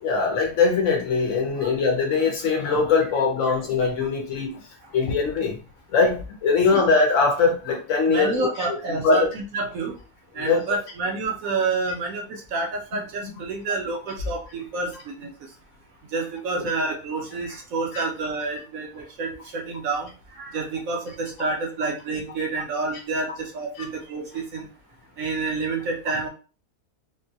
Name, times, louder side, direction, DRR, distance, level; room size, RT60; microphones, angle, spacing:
voice 1, 0.0-4.6 4.9-5.6 5.9-8.5 9.0-9.3 10.4-10.6 13.2-13.3 16.6-16.7 17.9-18.0, left 4 dB, 65° left, 1 dB, 0.9 m, -21 dB
voice 2, 8.1-9.9 10.3-15.3 16.1-24.7 25.2-26.3, right 3 dB, 65° right, 0 dB, 1.1 m, -29 dB
3.7 x 2.1 x 2.6 m, 0.36 s
omnidirectional pair, 1.6 m